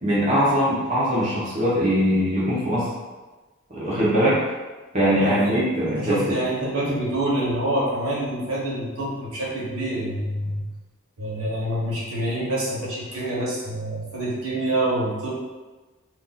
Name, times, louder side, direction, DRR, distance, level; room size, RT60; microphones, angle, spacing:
voice 1, 0.0-2.9 3.7-4.4 4.9-6.4, equal, 30° right, -9 dB, 0.9 m, -21 dB
voice 2, 5.2-10.6 11.2-15.3, right 1 dB, 90° right, -7 dB, 1.2 m, -26 dB
2.6 x 2.6 x 3.9 m, 1.2 s
head